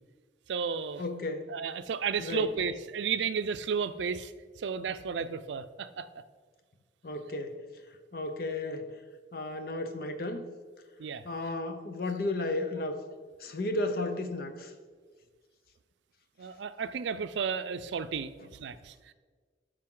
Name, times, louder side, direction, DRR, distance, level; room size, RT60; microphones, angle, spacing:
voice 1, 0.5-1.0 1.5-4.3 4.6-6.1 11.0-11.3 16.4-19.1, right 6 dB, 85° right, 12 dB, 0.4 m, -33 dB
voice 2, 1.0-1.5 2.2-2.5 7.0-7.6 8.1-8.9 9.3-10.4 11.2-13.0 13.4-14.7, left 2 dB, 55° left, 7 dB, 0.7 m, -33 dB
12.0 x 5.0 x 3.8 m, 1.5 s
head